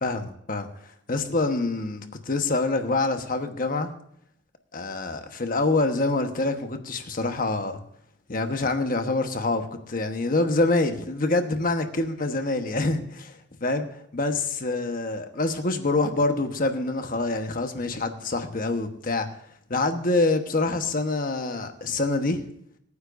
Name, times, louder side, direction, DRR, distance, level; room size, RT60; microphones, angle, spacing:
voice 1, 0.0-0.7 1.1-3.9 4.7-7.8 8.3-13.9 14.1-19.3 19.7-22.4, left 2 dB, 45° left, 6 dB, 1.2 m, -26 dB
25.0 x 9.8 x 2.6 m, 0.70 s
head